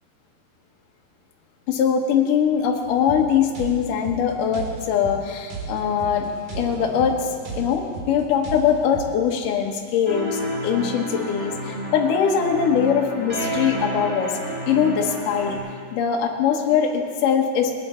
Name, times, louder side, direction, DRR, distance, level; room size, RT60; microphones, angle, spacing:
voice 1, 1.7-14.3 14.7-15.6 15.9-17.7, left 7 dB, 65° left, 1 dB, 2.4 m, -22 dB
sound 1, 2.8-9.1, right 4 dB, 55° right, 3.1 m, -35 dB
sound 2, 10.0-15.6, equal, 20° right, 3.8 m, -30 dB
20.5 x 10.5 x 4.4 m, 2.1 s
omnidirectional pair, 4.9 m